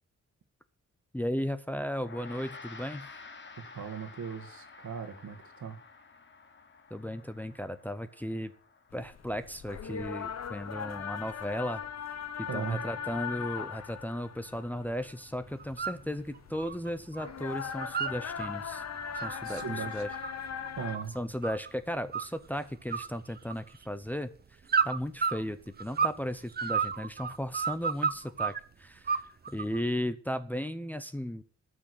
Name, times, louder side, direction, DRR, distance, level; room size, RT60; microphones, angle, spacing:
voice 1, 1.1-3.1 6.9-8.5 8.9-11.8 12.4-18.8 19.2-20.1 21.1-24.3 24.8-29.2 29.5-31.4, equal, 5° left, 0.6 m, -35 dB
Gong, 2.0-11.5, left 4 dB, 40° left, 1.5 m, -52 dB
voice 2, 3.6-5.8 12.5-12.8 19.4-20.0 20.7-21.2, right 7 dB, 75° right, 1.7 m, -39 dB
sound 1, 8.9-21.0, left 7 dB, 60° left, 1.0 m, -40 dB
sound 2, 15.6-16.0 16.3-17.3 17.6-18.5 18.9-21.7 22.1-22.6 22.9-23.9 24.7-26.2 26.5-28.6 29.1-29.8, right 6 dB, 35° right, 0.6 m, -31 dB
12.5 x 6.2 x 8.2 m
wide cardioid pair, 165°, 29 cm